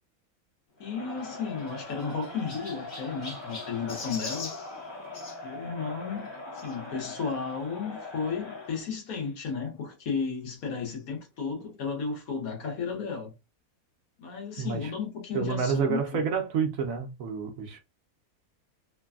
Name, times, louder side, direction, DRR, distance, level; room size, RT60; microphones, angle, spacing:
voice 1, 0.8-4.5 5.4-6.3 6.5-13.3 14.2-16.2, left 5 dB, 75° left, 1.4 m, -33 dB
Crowd, 0.8-8.9, left 2 dB, 30° left, 0.5 m, -41 dB
Chirp tweet, 1.1-5.4 6.6-6.8 7.5-7.6 7.8-7.9 9.1-9.2, left 3 dB, 45° left, 1.0 m, -43 dB
voice 2, 14.6-14.9 15.3-17.8, right 6 dB, 70° right, 1.0 m, -29 dB
3.2 x 2.2 x 2.3 m
omnidirectional pair, 1.6 m